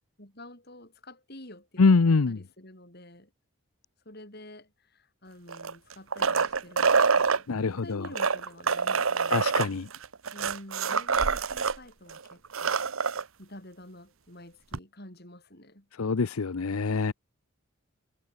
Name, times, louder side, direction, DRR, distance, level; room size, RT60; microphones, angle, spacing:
voice 1, 0.2-3.3 4.0-9.4 10.3-12.8 13.4-15.9, left 1 dB, 45° left, 8.0 m, -49 dB
voice 2, 1.8-2.4 7.5-8.1 9.3-9.9 16.0-17.1, left 4 dB, 85° left, 0.7 m, -24 dB
sound 1, 5.5-7.4 8.0-11.8 12.1-12.2 12.4-13.2 14.7-14.8, right 5 dB, 75° right, 1.0 m, -26 dB
head